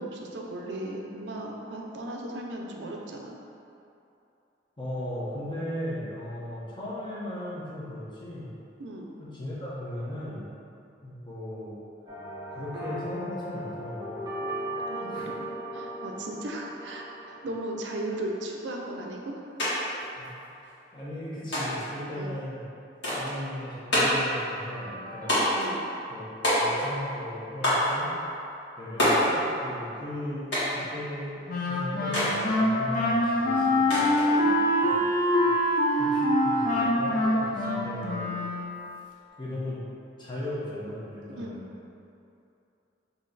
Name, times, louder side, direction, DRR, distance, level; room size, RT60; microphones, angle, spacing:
voice 1, 0.0-3.3 8.8-9.0 14.9-15.4 15.7-19.4 22.2-22.3 25.5-25.9 34.3-34.5 41.4-41.5, right 1 dB, 70° right, 0 dB, 0.5 m, -36 dB
voice 2, 4.8-8.5 9.2-10.4 11.0-11.7 12.5-14.2 15.1-15.3 20.2-20.3 20.9-22.6 23.2-25.4 26.1-26.2 26.5-28.1 28.8-34.2 34.8-35.0 35.3-35.5 36.0-38.6 39.4-39.8 40.2-41.7, left 1 dB, 25° left, -8 dB, 0.9 m, -37 dB
sound 1, 12.1-19.3 24.7-25.6, right 1 dB, 20° right, 0.6 m, -38 dB
sound 2, 19.6-19.7 20.0-20.7 21.5-21.9 23.0-23.4 23.9-24.3 25.3-25.7 26.4-27.0 27.6-27.9 29.0-29.3 30.5-30.8 32.1-32.4 33.9-34.3, equal, 75° left, 1.5 m, -25 dB
Wind instrument woodwind instrument, 31.5-38.9, left 1 dB, 50° left, 0.5 m, -25 dB
3.8 x 2.8 x 4.0 m, 2.7 s
head